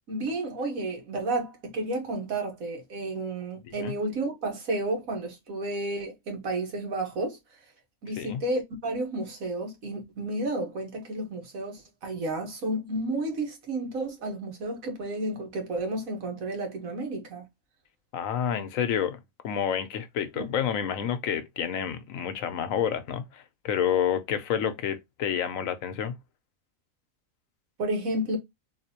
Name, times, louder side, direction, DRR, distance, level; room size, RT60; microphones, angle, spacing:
voice 1, 0.1-7.4 8.0-17.5 20.4-20.5 27.8-28.4, right 2 dB, 85° right, 1.7 m, -31 dB
voice 2, 18.1-19.2 19.4-26.1, left 8 dB, 80° left, 1.1 m, -29 dB
3.9 x 2.8 x 2.8 m
omnidirectional pair, 1.4 m